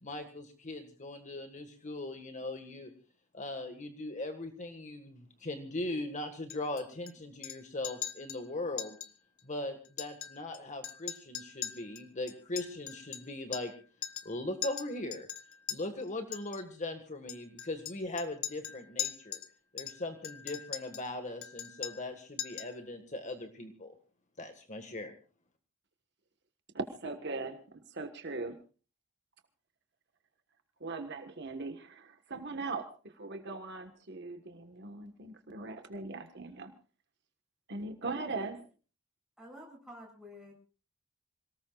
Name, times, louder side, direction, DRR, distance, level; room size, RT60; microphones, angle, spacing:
voice 1, 0.0-2.9 3.3-9.0 9.4-13.7 14.3-15.3 15.7-19.4 19.7-24.0 24.4-25.1, left 2 dB, 35° left, 6 dB, 1.7 m, -39 dB
Chink clink, 6.5-7.1 7.4-7.6 7.8-8.4 8.8-9.1 9.4-9.5 9.8-10.6 10.8-13.8 14.0-14.3 14.6-15.8 16.3-16.6 17.3-19.5 19.8-21.1 21.4-22.1 22.4-22.8, left 11 dB, 80° left, 1.4 m, -41 dB
voice 2, 26.7-28.6 30.8-36.7 37.7-38.7, right 3 dB, 55° right, 6 dB, 1.5 m, -40 dB
voice 3, 39.4-40.5, left 1 dB, 5° right, 0 dB, 7.6 m, -50 dB
27.5 x 19.0 x 2.5 m, 0.37 s
head